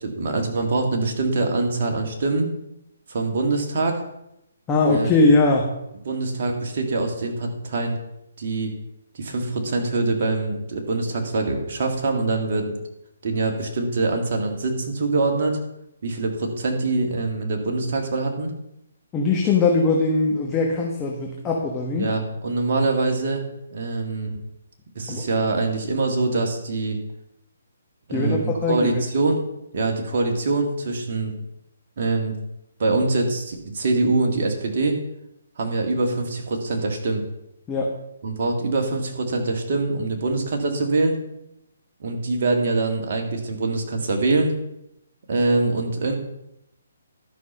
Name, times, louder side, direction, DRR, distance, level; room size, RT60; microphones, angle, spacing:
voice 1, 0.0-2.5 3.1-4.0 4.9-5.1 6.1-8.0 8.4-8.7 9.1-12.7 13.2-15.6 16.0-18.5 22.0-23.4 23.7-24.4 24.9-27.0 28.1-29.4 29.7-31.3 32.0-32.4 32.8-35.0 35.6-37.2 38.2-41.2 42.0-44.5 45.3-46.1, right 3 dB, 55° right, 2 dB, 2.1 m, -24 dB
voice 2, 4.7-5.7 19.1-22.1 25.1-25.3 28.1-29.0 37.7-37.9, left 3 dB, 20° left, -1 dB, 1.3 m, -21 dB
12.5 x 5.9 x 5.5 m, 0.83 s
figure-of-eight pair, 140°, 0 cm